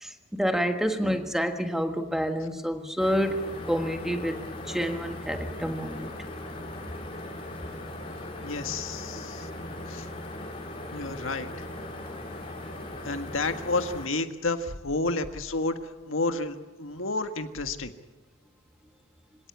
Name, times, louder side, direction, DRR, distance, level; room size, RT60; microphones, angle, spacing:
voice 1, 0.0-6.1, equal, ahead, 1.5 m, -28 dB
sound 1, 3.0-14.1, left 1 dB, 30° left, 3.9 m, -39 dB
voice 2, 8.4-9.5 9.9-10.1 10.9-11.5 13.0-15.8 16.1-17.9, left 3 dB, 75° left, 1.7 m, -30 dB
26.0 x 17.5 x 8.5 m
head